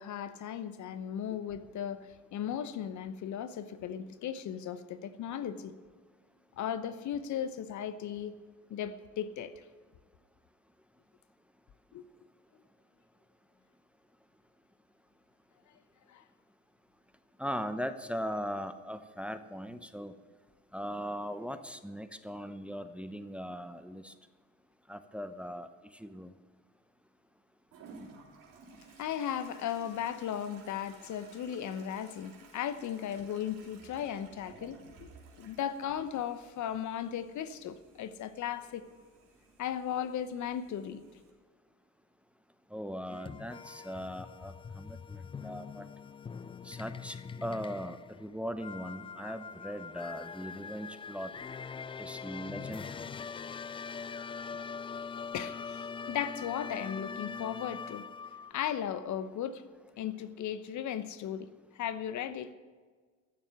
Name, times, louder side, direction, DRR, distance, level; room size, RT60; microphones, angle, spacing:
voice 1, 0.0-5.7 6.6-8.4 8.7-9.6 11.9-12.0 16.1-16.2 29.0-35.1 35.4-38.8 39.6-41.0 55.3-58.1 58.5-59.6 60.0-61.5 61.7-62.5, left 9 dB, 50° left, 13 dB, 1.0 m, -36 dB
voice 2, 17.4-20.1 20.7-24.1 24.9-26.3 42.7-45.8 46.6-51.3 52.0-53.0, equal, 5° right, 10 dB, 0.9 m, -39 dB
Toilet flush, 27.7-41.3, right 4 dB, 60° right, 3.6 m, -56 dB
sound 1, 43.1-58.5, left 6 dB, 15° left, 0.3 m, -43 dB
14.5 x 7.3 x 9.4 m, 1.5 s
hypercardioid pair, 65°, 37 cm